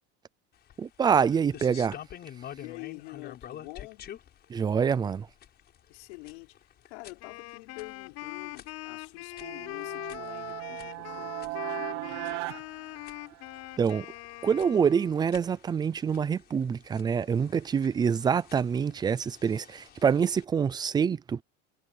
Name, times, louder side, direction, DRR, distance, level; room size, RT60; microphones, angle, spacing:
sound 1, 0.5-20.4, left 10 dB, 30° left, 5.5 m, -50 dB
voice 1, 0.8-2.0 4.5-5.3 13.8-14.1 14.4-21.4, right 7 dB, 15° right, 0.4 m, -26 dB
voice 2, 2.5-4.1 5.9-12.1, left 26 dB, 80° left, 5.3 m, -46 dB
Wind instrument woodwind instrument, 7.2-15.4, left 19 dB, 50° left, 7.1 m, -42 dB
sound 2, 9.3-13.7, right 22 dB, 65° right, 1.3 m, -38 dB
cardioid pair, 160°, 33 cm